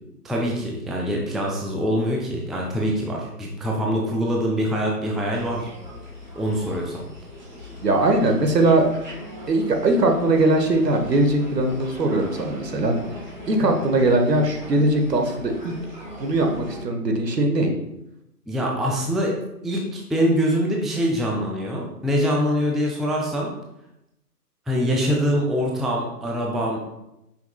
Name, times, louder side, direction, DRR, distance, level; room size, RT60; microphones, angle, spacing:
voice 1, 0.2-5.7 6.4-7.1 18.5-19.3 19.6-23.5 24.7-26.8, equal, ahead, -1 dB, 0.3 m, -24 dB
sound 1, 5.3-16.8, equal, 30° right, 0.8 m, -39 dB
voice 2, 7.8-8.9 9.5-13.0 13.5-15.7 16.2-17.7, right 2 dB, 80° right, 3 dB, 1.1 m, -20 dB
5.7 x 4.0 x 2.2 m, 0.87 s
figure-of-eight pair, 160°, 48 cm